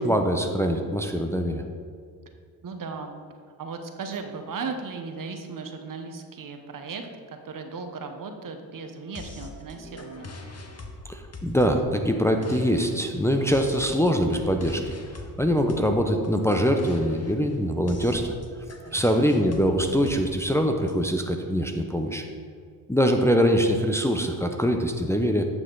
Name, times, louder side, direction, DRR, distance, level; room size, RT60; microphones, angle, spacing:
voice 1, 0.0-1.6 11.1-14.9 15.4-18.3 18.9-22.2 22.9-25.5, equal, 5° left, 4 dB, 0.7 m, -23 dB
voice 2, 2.6-3.1 3.6-10.3 18.6-19.2, right 4 dB, 50° right, 6 dB, 1.0 m, -37 dB
sound 1, 9.2-20.9, left 2 dB, 35° left, 1.3 m, -42 dB
9.0 x 5.9 x 3.9 m, 2.1 s
supercardioid pair, 60°, 42 cm